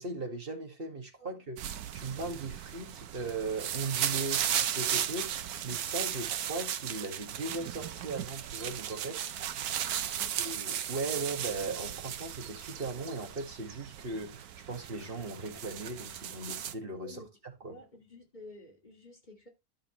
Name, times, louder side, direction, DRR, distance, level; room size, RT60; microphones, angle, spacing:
voice 1, 0.0-1.6 1.9-9.2 10.4-17.2 17.6-17.7, right 3 dB, 35° right, 2.2 m, -38 dB
sound 1, 1.6-16.7, right 10 dB, 80° right, 1.3 m, -36 dB
voice 2, 8.9-9.4 9.7-10.4 17.0-17.3 17.6-19.5, left 1 dB, 30° left, 2.6 m, -52 dB
11.5 x 6.4 x 3.1 m
omnidirectional pair, 1.6 m